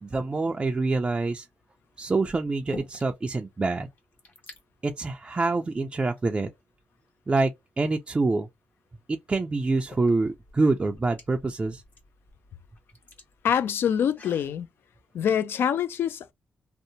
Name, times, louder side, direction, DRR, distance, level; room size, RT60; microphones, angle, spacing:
voice 1, 0.0-1.5 2.0-3.9 4.8-6.5 7.3-7.5 7.8-8.5 9.1-11.8, right 3 dB, 25° right, 0.3 m, -26 dB
sound 1, 1.4-1.5 2.2-3.3 3.6-3.7 3.9-4.6 5.4-5.6 6.2-7.1 8.8-8.9 9.6-14.6, left 3 dB, 55° left, 1.0 m, -48 dB
voice 2, 13.4-14.7 15.1-16.3, left 8 dB, 70° left, 0.3 m, -25 dB
2.7 x 2.0 x 2.6 m
cardioid pair, 85°, 4 cm